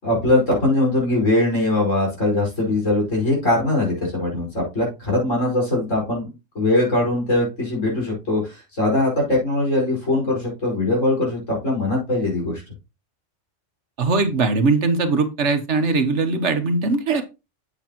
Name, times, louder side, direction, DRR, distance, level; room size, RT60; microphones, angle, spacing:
voice 1, 0.0-12.6, left 2 dB, 85° left, -2 dB, 5.5 m, -21 dB
voice 2, 14.0-17.2, right 3 dB, 65° right, 8 dB, 1.4 m, -20 dB
8.2 x 8.1 x 3.0 m, 0.26 s
omnidirectional pair, 1.3 m